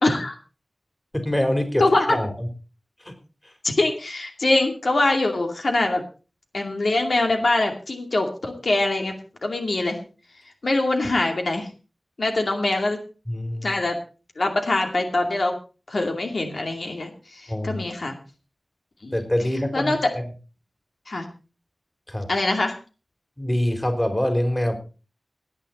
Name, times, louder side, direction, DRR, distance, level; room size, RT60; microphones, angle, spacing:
voice 1, 0.0-0.3 1.8-2.2 3.6-6.0 6.5-9.1 9.4-10.0 10.6-11.7 12.2-13.0 13.6-14.0 14.4-15.6 15.9-18.2 19.0-19.2 19.7-20.0 21.1-21.3 22.3-22.8, left 2 dB, 80° left, 3 dB, 2.5 m, -23 dB
voice 2, 1.1-1.8 2.1-2.5 3.0-3.1 3.4-3.5 13.3-13.7 17.5-17.9 19.1-20.2 22.1-22.3 23.4-24.8, left 1 dB, 20° left, 5 dB, 3.9 m, -25 dB
18.5 x 9.3 x 4.3 m, 0.35 s
wide cardioid pair, 55°, 0 cm